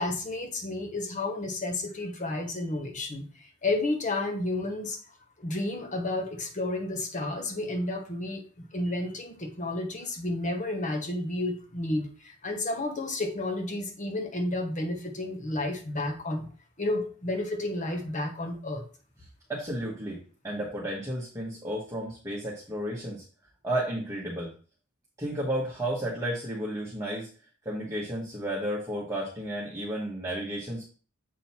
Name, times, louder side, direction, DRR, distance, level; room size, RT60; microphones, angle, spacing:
voice 1, 0.0-5.0 5.4-16.5 16.8-18.8, left 2 dB, 35° left, 3 dB, 1.2 m, -31 dB
voice 2, 19.5-20.2 20.4-23.2 23.6-24.5 25.2-27.3 27.6-30.8, right 1 dB, 15° right, -5 dB, 1.4 m, -32 dB
7.5 x 3.9 x 4.4 m, 0.39 s
head